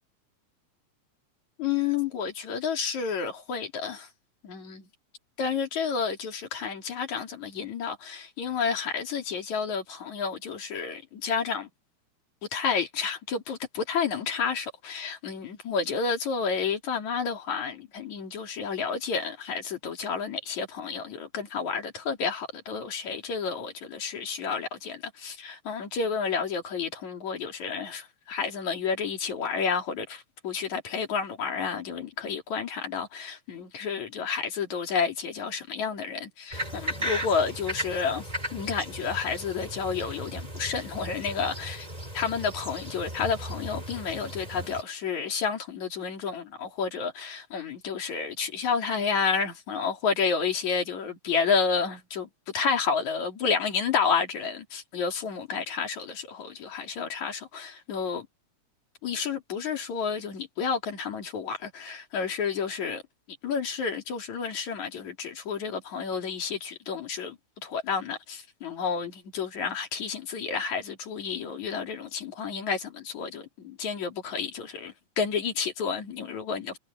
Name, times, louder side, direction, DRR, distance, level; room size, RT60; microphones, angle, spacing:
voice 1, 1.6-4.1 4.4-4.9 5.4-11.7 12.5-41.9 42.1-58.3 59.0-63.0 63.4-76.8, left 6 dB, 75° left, 4.4 m, -30 dB
sound 1, 36.5-44.8, equal, 10° right, 6.4 m, -36 dB
omnidirectional pair, 3.3 m